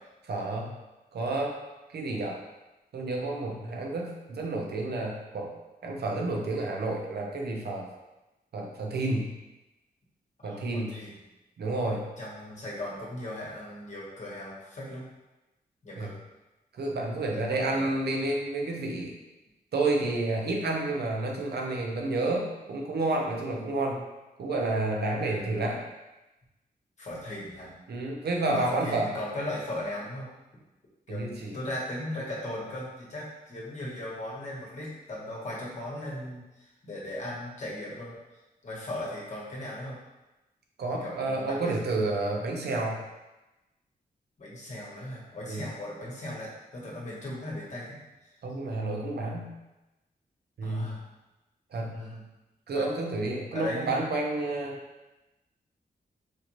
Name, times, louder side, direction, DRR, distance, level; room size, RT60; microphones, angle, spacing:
voice 1, 0.3-0.7 1.1-1.6 1.9-2.4 2.9-5.5 5.8-7.9 8.5-9.3 10.4-11.0 11.6-12.1 16.0-16.1 16.7-19.2 19.7-24.0 24.4-25.9 27.9-29.1 31.1-31.6 40.8-43.0 45.5-45.7 48.4-49.5 50.6-51.0 51.7-52.0 52.7-54.8, right 2 dB, 85° right, 0 dB, 0.6 m, -30 dB
voice 2, 10.4-11.2 12.2-15.1 15.8-16.1 17.3-17.9 25.2-25.6 27.0-27.7 28.5-30.3 31.1-36.4 36.8-38.1 38.6-40.0 41.0-41.7 44.4-48.0 50.6-51.0 51.8-52.2 52.7-52.8 53.5-54.0, left 1 dB, 45° left, -5 dB, 1.1 m, -37 dB
4.5 x 2.5 x 3.0 m, 1.0 s
wide cardioid pair, 125°, 16 cm